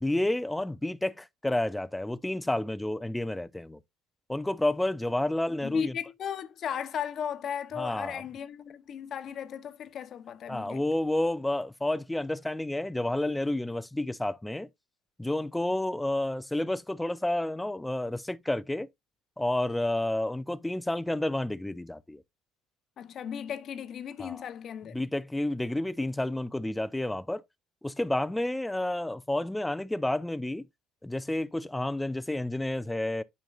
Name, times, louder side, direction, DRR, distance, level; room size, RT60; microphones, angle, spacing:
voice 1, 0.0-3.8 4.3-5.9 7.8-8.2 10.5-14.7 15.2-18.9 19.4-22.2 24.2-24.4 24.9-27.4 27.8-30.7 31.0-33.2, left 1 dB, 10° left, 0.5 m, -30 dB
voice 2, 5.6-10.8 23.0-25.0, left 8 dB, 50° left, 0.8 m, -36 dB
9.0 x 5.2 x 2.4 m
hypercardioid pair, 75°, 0 cm